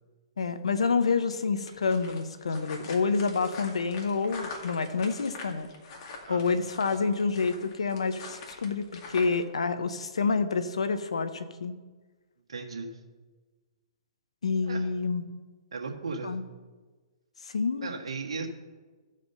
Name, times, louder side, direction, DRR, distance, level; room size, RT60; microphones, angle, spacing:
voice 1, 0.4-5.7 6.3-11.7 14.4-15.2 16.2-16.4 17.4-17.9, left 4 dB, 80° left, 11 dB, 0.9 m, -28 dB
sound 1, 1.7-9.4, left 3 dB, 45° left, 2.2 m, -44 dB
voice 2, 12.5-13.0 14.6-14.9 15.7-16.4 17.8-18.5, right 4 dB, 75° right, 0 dB, 1.8 m, -36 dB
15.0 x 5.1 x 5.6 m, 1.3 s
hypercardioid pair, 130°, 3 cm